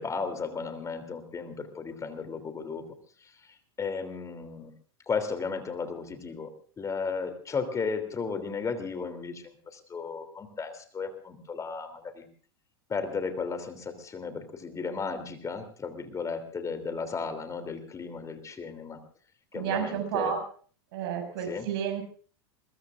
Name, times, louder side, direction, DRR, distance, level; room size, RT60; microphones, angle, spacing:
voice 1, 0.0-2.8 3.2-4.7 5.1-6.5 6.8-12.3 12.9-19.0 19.5-20.4 21.4-21.7, left 5 dB, 25° left, 8 dB, 3.1 m, -35 dB
voice 2, 19.5-20.4 20.9-22.0, right 8 dB, 70° right, 6 dB, 6.0 m, -31 dB
22.5 x 21.5 x 2.5 m, 0.43 s
hypercardioid pair, 100°, 14 cm